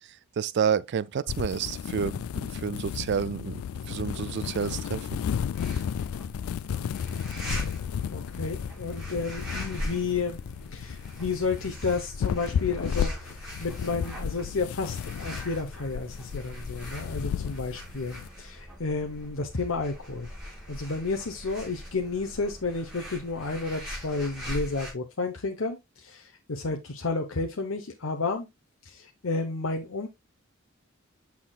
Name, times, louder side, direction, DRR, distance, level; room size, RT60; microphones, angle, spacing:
voice 1, 0.4-2.2 2.5-3.6 3.9-5.1, right 7 dB, 55° right, 0.3 m, -29 dB
sound 1, 1.3-18.3, left 8 dB, 90° left, 0.3 m, -33 dB
sound 2, 5.6-24.9, equal, 5° right, 4.9 m, -41 dB
voice 2, 8.1-10.4 10.7-20.3 20.7-28.5 28.8-30.1, left 4 dB, 75° left, 0.9 m, -31 dB
8.5 x 5.9 x 2.3 m
head